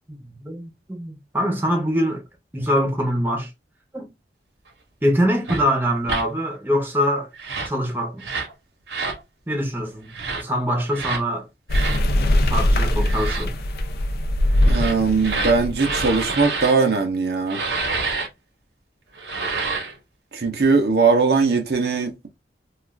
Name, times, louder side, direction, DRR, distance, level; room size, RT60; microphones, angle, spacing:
voice 1, 0.1-2.2 2.5-3.5 3.9-4.1 5.0-7.3 7.7-8.3 9.5-10.1 10.3-11.5 12.5-13.5, equal, 10° right, 0.7 m, -23 dB
sound 1, 5.4-5.6 6.0-6.2 7.3-7.8 8.2-8.5 8.9-9.2 10.1-10.4 10.9-11.2 11.7-12.0 13.0-13.4 14.6-16.7 17.5-18.3 19.1-19.9, right 4 dB, 85° right, 1.0 m, -28 dB
sound 2, 11.7-16.2, left 1 dB, 60° left, 0.4 m, -21 dB
voice 2, 14.7-17.6 20.3-22.3, right 4 dB, 65° right, 0.6 m, -20 dB
2.4 x 2.4 x 3.1 m
head